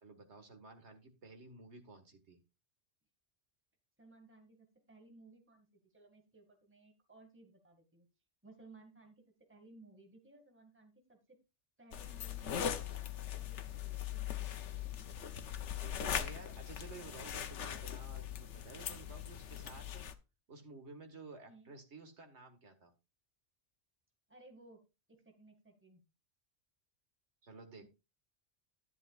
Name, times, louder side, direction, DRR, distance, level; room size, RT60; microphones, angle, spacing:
voice 1, 0.0-2.4 15.8-20.1 20.5-22.9 27.4-27.9, right 3 dB, 70° right, 5 dB, 2.0 m, -53 dB
voice 2, 4.0-8.1 8.4-11.4 11.8-15.0 21.5-21.7 24.3-24.8 25.1-26.0 27.8-27.9, right 2 dB, 10° right, 4 dB, 2.0 m, -60 dB
sound 1, 11.9-20.1, left 9 dB, 75° left, 1.1 m, -40 dB
11.0 x 10.5 x 2.4 m, 0.27 s
omnidirectional pair, 1.2 m